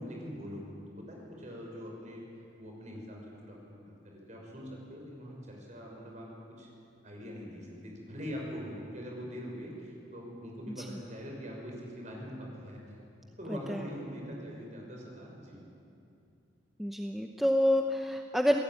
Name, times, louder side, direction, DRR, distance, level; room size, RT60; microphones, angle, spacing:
voice 1, 0.0-2.2 2.6-6.3 6.6-6.7 7.0-12.8 13.4-15.6, equal, 40° right, -1 dB, 6.1 m, -43 dB
voice 2, 13.5-13.8 16.8-18.6, equal, ahead, 3 dB, 0.8 m, -28 dB
27.5 x 17.0 x 9.0 m, 2.6 s
head